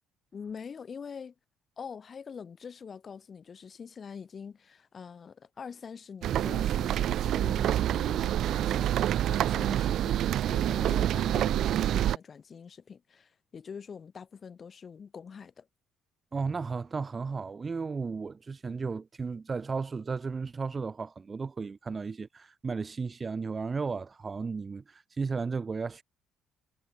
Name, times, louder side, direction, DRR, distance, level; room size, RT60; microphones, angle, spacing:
voice 1, 0.3-1.3 1.8-9.0 9.3-10.2 10.5-15.7, left 6 dB, 40° left, 5.7 m, -44 dB
sound 1, 6.2-12.2, right 11 dB, 65° right, 0.8 m, -27 dB
voice 2, 16.3-26.0, right 4 dB, 30° right, 1.3 m, -34 dB
cardioid pair, 95°, 0 cm